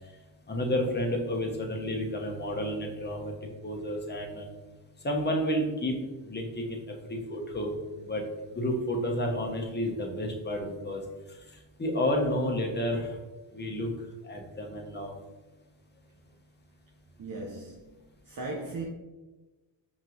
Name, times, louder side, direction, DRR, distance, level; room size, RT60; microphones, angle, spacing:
voice 1, 0.5-3.3 3.6-4.5 5.0-5.9 6.2-7.8 8.0-8.2 8.5-11.0 11.8-13.1 13.5-13.9 14.2-15.1, left 1 dB, 20° left, 1 dB, 1.0 m, -30 dB
voice 2, 17.2-18.0 18.2-18.8, right 3 dB, 45° right, -1 dB, 0.7 m, -37 dB
5.2 x 3.0 x 2.5 m, 1.2 s
cardioid pair, 70°, 46 cm